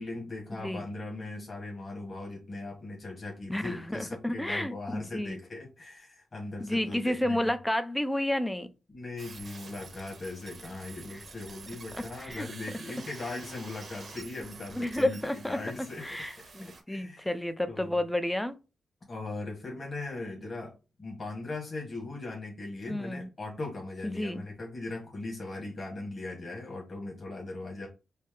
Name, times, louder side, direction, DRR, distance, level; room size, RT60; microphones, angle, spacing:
voice 1, 0.0-7.5 8.9-16.2 16.9-17.3 17.7-18.0 19.1-20.7 21.0-27.9, left 2 dB, 30° left, 1.5 m, -39 dB
voice 2, 3.5-5.4 6.6-8.7 11.1-11.2 11.9-12.5 14.7-15.6 16.0-18.6 22.9-23.3 24.0-24.4, left 1 dB, 5° left, 0.4 m, -31 dB
sound 1, 9.2-16.8, right 4 dB, 45° right, 0.8 m, -48 dB
4.3 x 2.0 x 3.6 m
wide cardioid pair, 130°, 0 cm